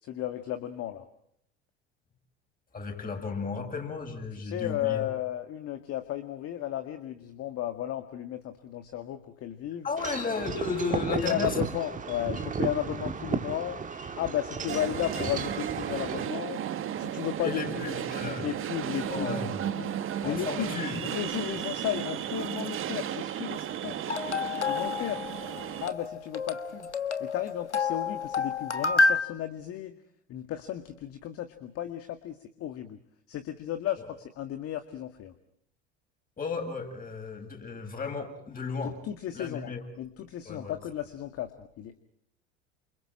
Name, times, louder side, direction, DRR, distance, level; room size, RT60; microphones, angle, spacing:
voice 1, 0.0-1.1 4.3-9.9 10.9-13.8 14.1-16.6 17.0-17.9 18.4-19.3 19.6-20.0 20.2-24.0 24.7-25.2 25.8-26.9 27.2-29.9 30.3-33.0 33.3-35.3 38.8-42.1, left 11 dB, 45° left, 8 dB, 2.0 m, -34 dB
voice 2, 2.7-5.0 9.8-11.6 17.4-18.5 19.1-19.6 20.2-21.0 25.2-25.3 34.0-34.1 36.4-39.0 39.3-39.8 40.4-40.7, left 4 dB, 25° left, 3 dB, 7.9 m, -34 dB
Wind chime / Wind, 10.0-16.3, right 6 dB, 25° right, 1.9 m, -34 dB
sound 1, 14.7-25.9, right 10 dB, 40° right, 1.9 m, -34 dB
sound 2, 24.1-29.2, left 3 dB, 90° left, 1.4 m, -29 dB
29.5 x 28.0 x 4.3 m, 0.70 s
figure-of-eight pair, 70°, 34 cm